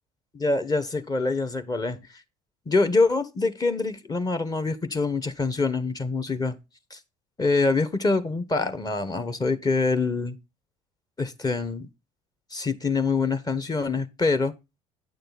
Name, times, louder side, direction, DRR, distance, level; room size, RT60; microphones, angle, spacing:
voice 1, 0.3-2.0 2.7-6.6 6.9-7.0 7.4-10.4 11.2-11.9 12.5-14.5, left 3 dB, 20° left, 1.4 m, -25 dB
9.7 x 6.7 x 4.1 m
figure-of-eight pair, 60°, 18 cm